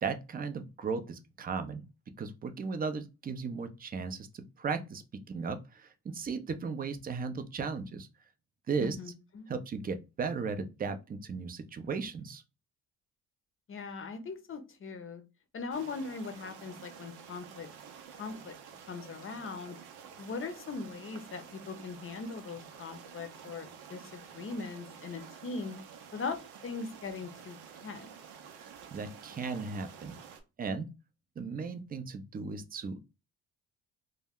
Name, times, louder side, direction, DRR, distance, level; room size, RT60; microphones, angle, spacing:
voice 1, 0.0-1.9 2.2-8.1 8.7-9.0 9.5-12.4 28.5-30.2 30.6-30.9 31.4-33.0, right 5 dB, 25° right, 10 dB, 0.4 m, -36 dB
voice 2, 8.8-9.5 13.7-15.2 15.5-17.7 18.2-18.5 18.9-19.8 20.2-25.8 26.1-27.6 27.8-28.2, left 4 dB, 35° left, 8 dB, 0.6 m, -40 dB
sound 1, 15.7-30.4, right 7 dB, 80° right, 0.6 m, -50 dB
2.2 x 2.1 x 3.5 m, 0.28 s
supercardioid pair, 70°, 38 cm